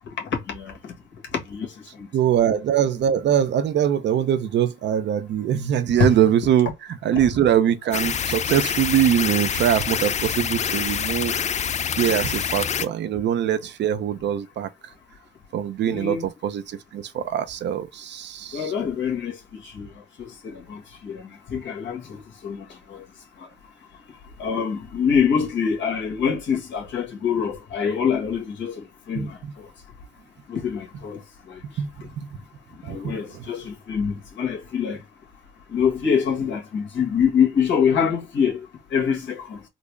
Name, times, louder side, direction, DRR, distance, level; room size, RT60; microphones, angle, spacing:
voice 1, 0.2-0.9 1.3-2.1 6.0-6.1 13.1-13.2 15.9-16.3 18.5-23.0 23.4-23.5 24.4-29.7 30.5-31.2 31.5-31.8 32.8-35.0 35.7-39.6, left 7 dB, 70° left, 1.5 m, -25 dB
voice 2, 2.1-6.7 7.0-11.3 12.0-14.7 15.5-18.7 29.2-29.3 31.8-31.9 32.8-33.1, right 9 dB, 65° right, 0.6 m, -22 dB
sound 1, 7.9-12.9, left 7 dB, 35° left, 0.4 m, -26 dB
3.9 x 2.0 x 3.3 m
cardioid pair, 90°, 20 cm